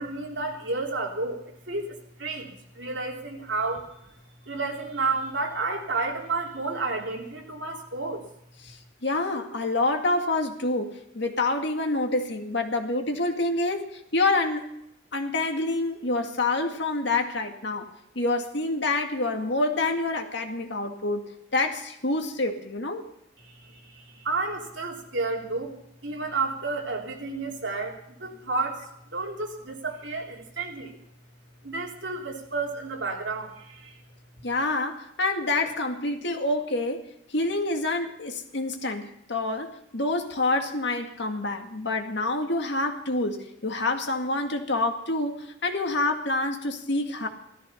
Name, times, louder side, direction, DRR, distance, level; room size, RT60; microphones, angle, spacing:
voice 1, 0.0-3.9 4.4-8.2 23.4-25.8 26.0-31.0 31.6-34.0, right 3 dB, 65° right, 0 dB, 3.5 m, -31 dB
voice 2, 8.6-14.7 15.1-17.9 18.2-23.1 34.4-37.1 37.3-47.3, left 2 dB, 65° left, 4 dB, 2.1 m, -27 dB
16.5 x 14.0 x 5.7 m, 0.79 s
head